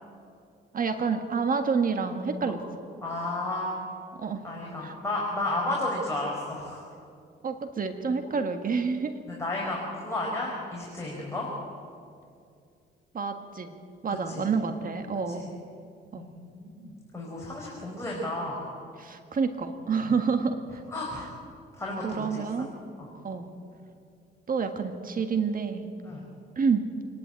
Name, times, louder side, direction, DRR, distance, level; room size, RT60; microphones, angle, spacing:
voice 1, 0.7-2.6 4.2-4.5 4.8-5.0 7.4-9.2 13.1-13.7 14.0-15.5 16.1-16.2 19.0-20.8 22.0-22.7 23.2-23.5 24.5-25.9 26.6-26.9, right 5 dB, 45° right, 7 dB, 1.7 m, -28 dB
voice 2, 3.0-3.8 4.4-6.8 9.3-11.5 14.3-14.5 16.1-18.6 20.0-20.1 20.9-21.3 21.8-22.7 23.0-23.1 26.0-26.3, left 2 dB, 15° left, -4 dB, 4.9 m, -33 dB
26.5 x 11.5 x 9.1 m, 2.4 s
cardioid pair, 90°, 20 cm